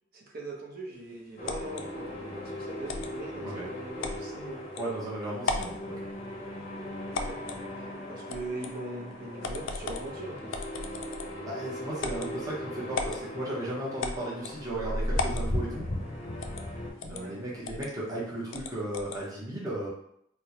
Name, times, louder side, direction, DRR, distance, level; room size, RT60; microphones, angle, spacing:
voice 1, 0.1-4.7 7.1-7.4 7.8-10.5 17.1-17.4, right 2 dB, 45° right, -1 dB, 0.8 m, -41 dB
sound 1, 1.4-16.9, left 1 dB, 35° left, 0.6 m, -37 dB
sound 2, 1.5-1.8 2.9-3.1 4.0-4.2 4.8-4.9 5.4-5.8 7.1-7.6 8.3-8.7 9.4-10.1 10.5-11.4 12.0-12.3 12.9-13.2 14.0-14.6 15.2-15.5 16.4-16.7 17.0-17.2 17.6-17.9 18.5-19.2, left 3 dB, 70° left, 0.4 m, -35 dB
voice 2, 4.8-5.9 11.4-15.9 17.0-19.9, right 1 dB, 15° right, -6 dB, 0.9 m, -35 dB
4.2 x 2.1 x 2.9 m, 0.72 s
head